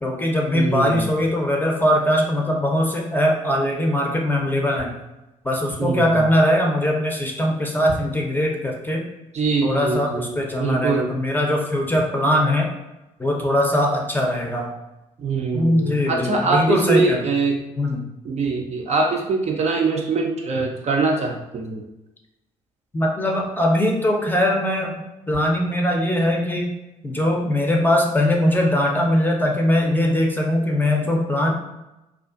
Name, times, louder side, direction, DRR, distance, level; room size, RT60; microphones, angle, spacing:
voice 1, 0.0-5.0 5.4-9.0 9.6-12.7 13.2-14.7 15.5-17.2 17.8-18.0 22.9-26.7 27.0-31.5, left 1 dB, 10° left, 0 dB, 0.6 m, -21 dB
voice 2, 0.5-1.1 5.8-6.2 9.3-11.1 15.2-17.6 18.2-21.8, right 4 dB, 40° right, 1 dB, 0.5 m, -23 dB
2.4 x 2.4 x 2.4 m, 0.97 s
hypercardioid pair, 50°, 17 cm